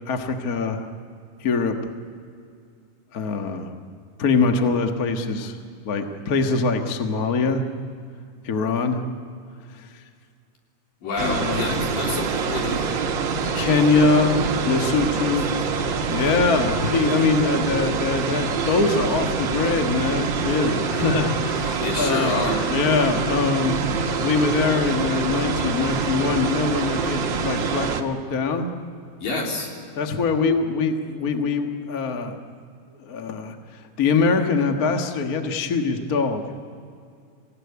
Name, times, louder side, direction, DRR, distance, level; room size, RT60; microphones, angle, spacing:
voice 1, 0.1-0.9 1.4-1.7 3.1-3.7 4.2-5.6 5.8-7.6 8.4-9.0 11.2-11.8 13.5-15.5 16.1-22.4 22.7-23.8 24.2-28.7 30.0-32.4 33.0-36.4, left 4 dB, 45° left, 5 dB, 1.2 m, -23 dB
voice 2, 11.0-13.0 13.5-13.7 14.8-15.4 21.8-22.7 29.2-29.7, left 3 dB, 75° left, 0 dB, 5.0 m, -29 dB
sound 1, 11.2-28.0, right 5 dB, 55° right, 1.3 m, -25 dB
sound 2, 12.1-20.1, right 8 dB, 75° right, 1.7 m, -38 dB
27.0 x 17.0 x 9.7 m, 2.3 s
omnidirectional pair, 4.0 m